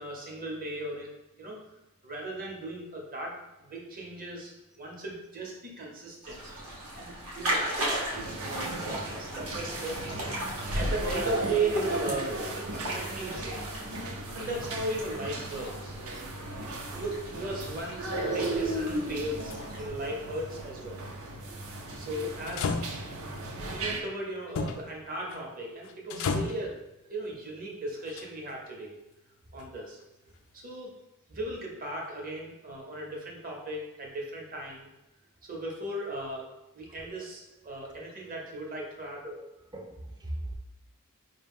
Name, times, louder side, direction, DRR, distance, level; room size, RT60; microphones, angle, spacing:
voice 1, 0.0-1.7 2.0-6.4 7.0-7.7 8.1-10.0 10.5-13.9 14.3-15.9 16.9-21.0 22.0-22.7 23.7-26.8 27.1-29.0 29.5-30.0 30.5-30.9 31.3-34.9 35.4-36.5 36.7-39.2, right 2 dB, 40° right, -1 dB, 0.8 m, -37 dB
sound 1, 6.2-19.9, right 1 dB, 85° right, 1.0 m, -38 dB
sound 2, 8.1-24.0, right 1 dB, 70° right, 0.5 m, -35 dB
sound 3, 19.4-19.6 22.5-23.3 24.5-24.9 25.3-25.5 25.8-26.7 28.0-28.6 29.6-29.7, left 4 dB, 65° left, 0.3 m, -33 dB
voice 2, 39.7-40.5, right 1 dB, 20° right, 2 dB, 0.4 m, -40 dB
4.6 x 2.2 x 3.5 m, 0.92 s
head